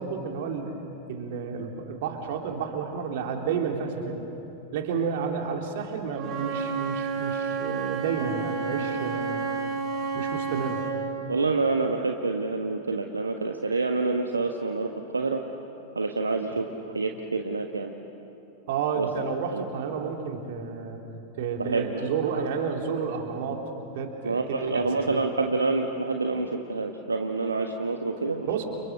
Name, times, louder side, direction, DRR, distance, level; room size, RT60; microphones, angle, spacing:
voice 1, 0.0-4.3 4.7-9.5 10.1-10.9 18.7-21.0 21.4-23.6 23.9-25.3 28.5-28.7, right 6 dB, 55° right, 2 dB, 3.6 m, -31 dB
Wind instrument woodwind instrument, 6.1-11.0, right 5 dB, 30° right, 5.7 m, -30 dB
voice 2, 11.3-15.4 15.9-16.7 16.9-17.9 18.9-19.1 19.5-19.6 21.6-22.1 22.3-22.4 24.2-28.5, right 3 dB, 75° right, 4 dB, 1.4 m, -27 dB
30.0 x 29.5 x 6.7 m, 2.9 s
figure-of-eight pair, 90°, 0 cm